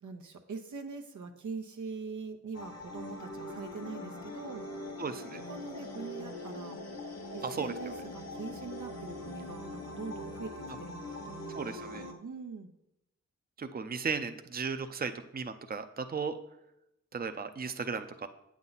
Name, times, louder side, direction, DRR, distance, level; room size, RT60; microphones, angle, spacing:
voice 1, 0.0-4.7 5.5-6.8 7.3-12.7, right 4 dB, 90° right, 3 dB, 0.9 m, -43 dB
sound 1, 2.5-12.1, left 2 dB, 60° left, 1.2 m, -42 dB
voice 2, 5.0-5.4 7.4-7.7 11.5-12.1 13.6-16.4 17.1-18.3, right 5 dB, 30° right, 8 dB, 0.6 m, -35 dB
8.8 x 7.3 x 4.1 m, 0.85 s
cardioid pair, 60°, 29 cm